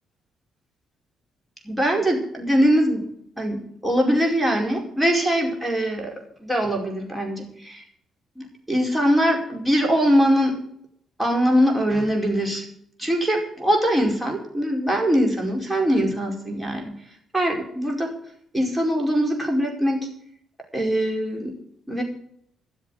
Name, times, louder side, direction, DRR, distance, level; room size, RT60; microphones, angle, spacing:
voice 1, 1.6-3.1 3.4-7.8 8.4-10.6 11.2-12.6 13.0-17.0 17.3-18.1 18.5-20.1 20.7-21.6 21.9-22.0, equal, 10° right, 0 dB, 4.9 m, -22 dB
13.5 x 7.5 x 9.4 m, 0.67 s
cardioid pair, 90°, 0 cm